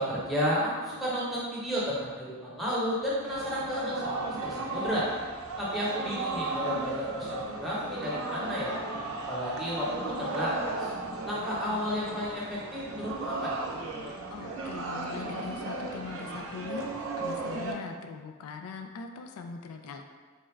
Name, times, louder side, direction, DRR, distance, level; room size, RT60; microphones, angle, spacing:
voice 1, 0.0-5.1 5.6-8.8 9.3-10.9 11.2-13.6, equal, ahead, -8 dB, 0.8 m, -32 dB
sound 1, 3.2-17.7, right 2 dB, 75° right, 0.5 m, -35 dB
voice 2, 14.3-20.0, left 5 dB, 85° left, 5 dB, 0.3 m, -41 dB
4.1 x 2.4 x 3.1 m, 1.4 s
head